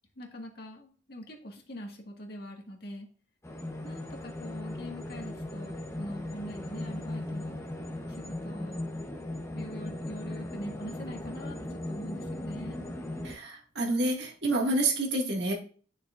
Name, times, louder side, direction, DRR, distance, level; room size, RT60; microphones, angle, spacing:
voice 1, 0.1-3.1 3.8-7.6 8.1-8.8 9.5-12.8, equal, 55° left, 1 dB, 1.8 m, -43 dB
sound 1, 3.4-13.3, left 1 dB, 15° left, 0.9 m, -38 dB
voice 2, 13.2-15.5, right 2 dB, 65° right, -1 dB, 2.0 m, -28 dB
9.5 x 6.4 x 2.5 m, 0.40 s
head